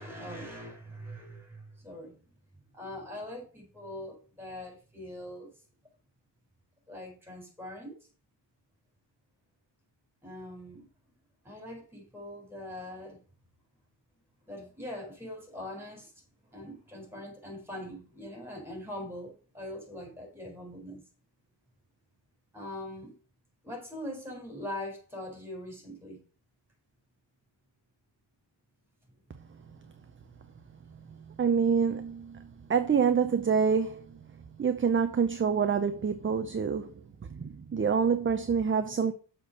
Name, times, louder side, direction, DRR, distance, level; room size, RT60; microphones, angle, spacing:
voice 1, 0.0-2.2 2.7-5.5 6.9-8.0 10.2-10.9 11.4-13.2 14.5-16.1 16.5-21.0 22.5-23.2 23.6-26.2, left 1 dB, 5° right, 4.2 m, -42 dB
voice 2, 31.4-34.0 34.6-36.9 37.2-39.1, right 6 dB, 25° right, 0.6 m, -27 dB
6.9 x 4.3 x 6.4 m
wide cardioid pair, 115°, 46 cm